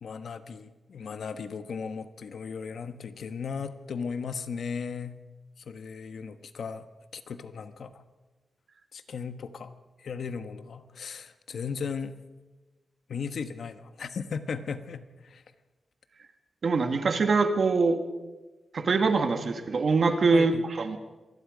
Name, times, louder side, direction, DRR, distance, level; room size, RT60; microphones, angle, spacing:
voice 1, 0.0-5.2 5.6-6.8 7.1-8.0 8.9-9.7 10.0-12.1 13.1-15.4 20.3-20.6, left 6 dB, 65° left, 10 dB, 1.2 m, -36 dB
voice 2, 16.6-18.0 18.7-21.0, right 4 dB, 50° right, 6 dB, 1.9 m, -24 dB
26.0 x 20.5 x 5.2 m, 1.2 s
wide cardioid pair, 170°, 0 cm